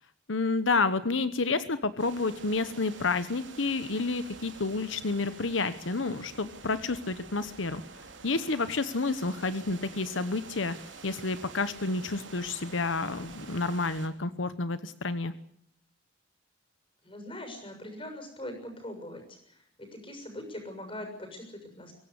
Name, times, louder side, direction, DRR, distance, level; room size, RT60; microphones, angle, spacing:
voice 1, 0.3-7.8 8.2-10.7 11.0-15.3, left 3 dB, 90° left, 12 dB, 1.1 m, -30 dB
sound 1, 2.0-14.1, right 4 dB, 75° right, 3.3 m, -48 dB
voice 2, 17.0-21.9, left 1 dB, 30° left, 5 dB, 6.9 m, -42 dB
24.0 x 16.0 x 8.3 m, 0.72 s
head